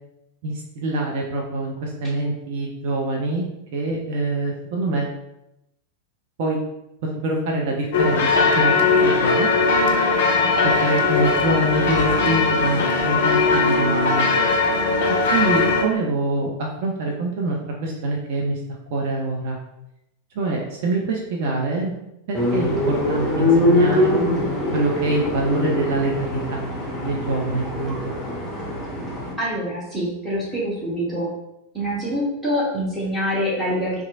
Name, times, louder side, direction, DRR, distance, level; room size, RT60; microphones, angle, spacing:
voice 1, 0.4-3.4 3.7-5.1 6.4-6.6 7.2-8.7 9.0-9.5 10.6-14.3 15.3-17.6 17.8-18.6 18.9-19.6 20.3-21.9 22.3-24.1 24.7-26.7 27.0-28.1, right 2 dB, 50° right, -1 dB, 0.4 m, -25 dB
sound 1, 7.9-15.8, left 4 dB, 55° left, 0.4 m, -19 dB
sound 2, 22.3-29.3, left 1 dB, 10° left, 0.7 m, -23 dB
voice 2, 29.4-31.3 31.7-34.0, equal, 10° right, -8 dB, 1.0 m, -25 dB
2.9 x 2.4 x 2.5 m, 0.86 s
figure-of-eight pair, 90°, 0 cm